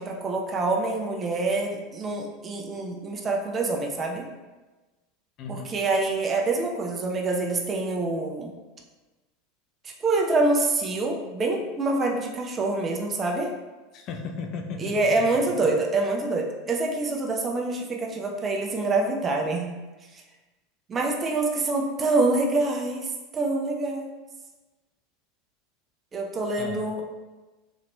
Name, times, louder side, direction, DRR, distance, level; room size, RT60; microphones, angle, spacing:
voice 1, 0.0-4.2 5.5-8.5 9.8-13.5 14.8-19.7 20.1-20.2 20.9-24.1 26.1-27.0, right 2 dB, 30° right, 0 dB, 0.6 m, -26 dB
voice 2, 5.4-5.7 13.9-15.1 26.6-26.9, left 4 dB, 45° left, 4 dB, 0.3 m, -35 dB
3.9 x 2.9 x 2.2 m, 1.2 s
figure-of-eight pair, 80°, 0 cm